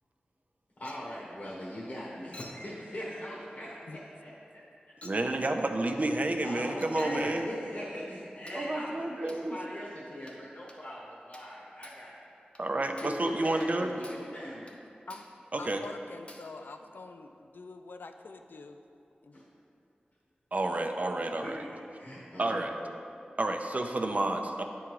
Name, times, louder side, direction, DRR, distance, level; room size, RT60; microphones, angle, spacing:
voice 1, 0.8-4.6 6.4-12.1 13.0-14.8 19.3-19.4 21.4-21.5 21.9-22.7, equal, 60° left, -6 dB, 1.2 m, -41 dB
Chink clink, 0.9-1.2 2.3-2.7 3.7-3.9 5.0-5.3 6.8-7.2 8.5-8.7 9.3-9.5 10.3-10.4 10.7-10.9 11.3-11.6 11.8-12.1 12.6-12.7 13.0-13.3 13.6-13.7 14.0-14.3 14.7-14.8 15.1-15.4 15.8-16.0 16.3-16.6, left 1 dB, 35° left, 0.7 m, -51 dB
voice 2, 5.0-7.5 8.5-9.6 12.6-13.9 15.5-15.8 20.5-21.6 22.4-23.0 23.4-24.6, right 2 dB, 45° right, 5 dB, 0.5 m, -30 dB
voice 3, 15.6-18.8 19.2-19.4, left 3 dB, 75° left, 7 dB, 0.4 m, -45 dB
8.8 x 3.6 x 4.7 m, 2.8 s
wide cardioid pair, 55°, 3 cm